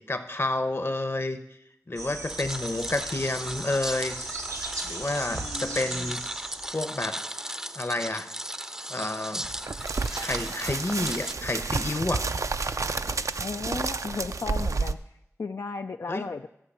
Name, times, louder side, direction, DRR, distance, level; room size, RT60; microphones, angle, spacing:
voice 1, 0.0-1.4 1.9-4.2 4.8-6.2 6.7-7.2 7.8-8.3 8.9-9.5 10.2-12.3 16.1-16.2, left 2 dB, 45° left, 9 dB, 0.9 m, -29 dB
sound 1, 2.0-7.0, right 3 dB, 90° right, 0.8 m, -37 dB
sound 2, 2.3-11.3, right 1 dB, 10° right, 0.5 m, -37 dB
voice 2, 5.3-6.1 13.4-16.5, left 4 dB, 70° left, 6 dB, 0.4 m, -35 dB
sound 3, 9.4-14.9, right 4 dB, 70° right, 0.4 m, -30 dB
12.5 x 6.8 x 5.6 m, 0.82 s
wide cardioid pair, 45°, 6 cm